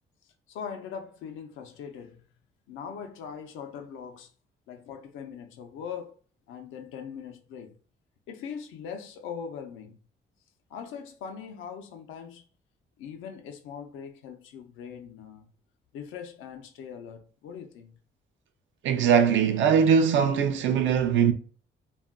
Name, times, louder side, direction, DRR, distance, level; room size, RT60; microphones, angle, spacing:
voice 1, 0.5-2.2 2.7-4.3 4.7-6.1 6.5-7.8 8.3-10.0 10.7-12.4 13.0-15.5 15.9-18.0, left 7 dB, 90° left, 0.5 m, -41 dB
voice 2, 18.8-21.3, right 7 dB, 75° right, 0.5 m, -21 dB
2.4 x 2.2 x 3.5 m
cardioid pair, 90°, 20 cm